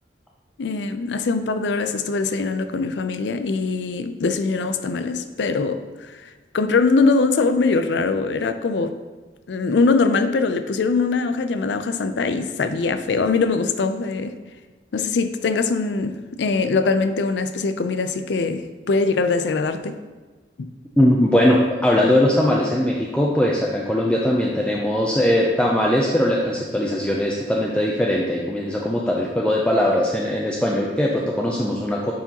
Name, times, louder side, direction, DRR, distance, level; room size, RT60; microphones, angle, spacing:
voice 1, 0.6-9.0 9.5-14.3 14.9-20.0 20.6-20.7, left 4 dB, 80° left, 0.4 m, -22 dB
voice 2, 21.0-32.1, left 1 dB, 5° left, 0.4 m, -20 dB
9.0 x 4.8 x 2.9 m
head